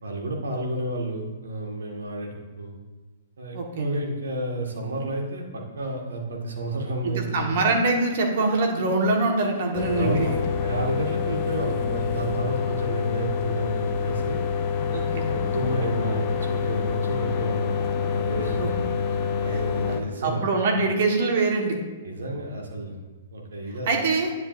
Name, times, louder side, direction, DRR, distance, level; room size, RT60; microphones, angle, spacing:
voice 1, 0.0-2.8 3.4-7.5 9.9-10.3 10.6-14.4 15.3-17.7 18.1-18.7 19.2-20.4 20.8-20.9 22.0-23.0 23.3-24.0, right 2 dB, 75° right, 0 dB, 1.9 m, -31 dB
voice 2, 3.5-4.0 7.0-10.4 14.9-15.3 18.6-18.7 19.5-19.6 19.9-20.0 20.2-21.8 23.9-24.3, right 3 dB, 55° right, 2 dB, 1.5 m, -24 dB
sound 1, 9.7-20.0, left 6 dB, 40° left, 0.9 m, -26 dB
10.0 x 7.9 x 2.6 m, 1.3 s
figure-of-eight pair, 115°, 0 cm